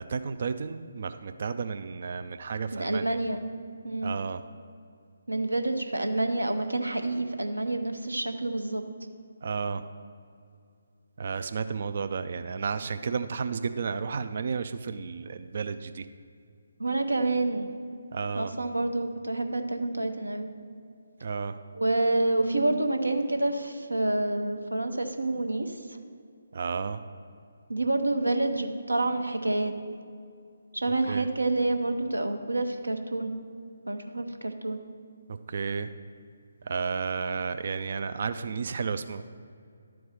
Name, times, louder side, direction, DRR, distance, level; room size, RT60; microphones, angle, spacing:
voice 1, 0.0-3.2 4.0-4.4 9.4-9.8 11.2-16.1 18.1-18.5 21.2-21.6 26.5-27.0 31.1-31.3 35.3-35.9 36.6-39.2, right 5 dB, 45° right, 10 dB, 0.4 m, -32 dB
voice 2, 2.7-3.4 3.8-4.2 5.3-8.8 16.8-17.7 18.4-20.5 21.8-25.8 27.7-29.7 30.7-33.3 33.9-34.8, right 2 dB, 80° right, 6 dB, 0.9 m, -28 dB
11.5 x 4.6 x 6.5 m, 2.4 s
figure-of-eight pair, 145°, 0 cm